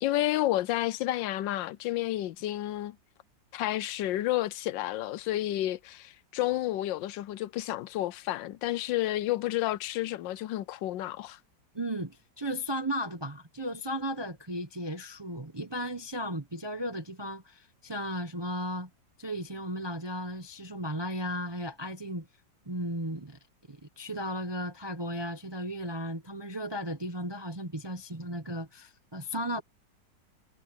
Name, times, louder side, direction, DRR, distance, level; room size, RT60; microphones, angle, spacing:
voice 1, 0.0-3.0 3.5-11.4, left 15 dB, 85° left, 1.3 m, -30 dB
voice 2, 11.7-18.9 19.2-22.3 22.7-23.4 23.7-29.6, equal, 20° right, 0.7 m, -35 dB
omnidirectional pair, 2.0 m